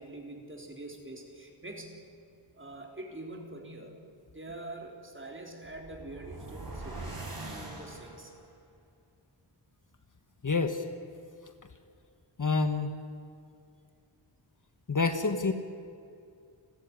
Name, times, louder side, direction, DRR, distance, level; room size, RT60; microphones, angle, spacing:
voice 1, 0.0-2.0 2.6-4.0 4.3-7.2 7.5-8.3, right 2 dB, 25° right, 2 dB, 3.9 m, -44 dB
sound 1, 5.6-8.5, right 2 dB, 45° right, 5.0 m, -42 dB
voice 2, 10.4-10.8 12.4-12.9 14.9-15.5, left 4 dB, 40° left, 7 dB, 1.5 m, -27 dB
30.0 x 13.5 x 9.8 m, 2.4 s
wide cardioid pair, 110°, 47 cm